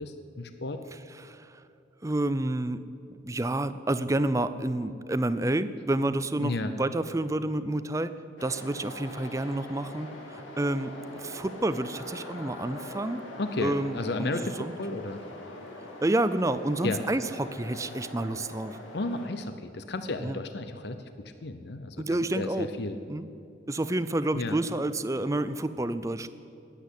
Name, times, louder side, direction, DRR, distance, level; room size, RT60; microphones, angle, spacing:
voice 1, 0.0-0.8 6.4-6.7 13.4-15.2 16.8-17.0 18.9-22.0 22.4-23.0 24.3-24.6, left 2 dB, 55° left, 9 dB, 0.7 m, -33 dB
voice 2, 0.9-1.6 2.0-2.8 3.2-8.1 8.4-13.3 13.6-14.3 14.6-14.8 16.0-18.8 20.2-20.4 22.0-22.7 23.1-23.3 23.7-26.3, right 1 dB, 15° right, 13 dB, 0.4 m, -29 dB
sound 1, 8.4-19.3, left 1 dB, 80° left, 2.3 m, -43 dB
20.0 x 8.4 x 8.3 m, 2.7 s
head